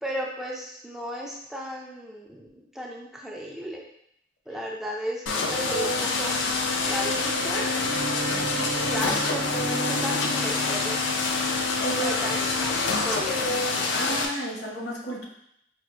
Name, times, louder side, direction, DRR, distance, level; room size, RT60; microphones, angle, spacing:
voice 1, 0.0-3.9 4.5-6.4 6.8-7.7 8.5-11.0 12.0-13.4, equal, 5° right, -2 dB, 0.3 m, -35 dB
sound 1, 5.3-14.3, left 3 dB, 85° left, 0.4 m, -26 dB
Bowed string instrument, 7.8-11.9, right 2 dB, 55° right, 0.7 m, -35 dB
voice 2, 8.3-8.6 11.5-12.2 13.9-15.3, right 1 dB, 65° left, -2 dB, 0.8 m, -32 dB
4.6 x 2.4 x 2.4 m, 0.73 s
head